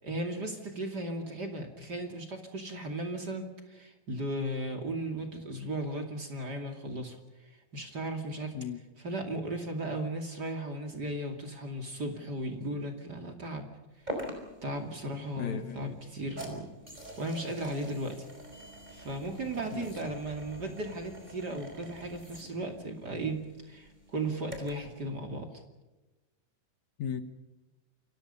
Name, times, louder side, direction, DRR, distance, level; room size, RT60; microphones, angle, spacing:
voice 1, 0.0-7.2 7.7-8.5 9.0-13.7 14.6-16.7 17.2-18.2 18.9-25.5, right 1 dB, 30° right, 4 dB, 2.8 m, -36 dB
sound 1, 14.1-24.9, right 1 dB, 10° right, 4.8 m, -45 dB
voice 2, 15.4-16.0 19.7-19.9 27.0-27.2, left 9 dB, 65° left, 9 dB, 2.3 m, -36 dB
29.0 x 23.5 x 5.6 m, 1.1 s
omnidirectional pair, 3.8 m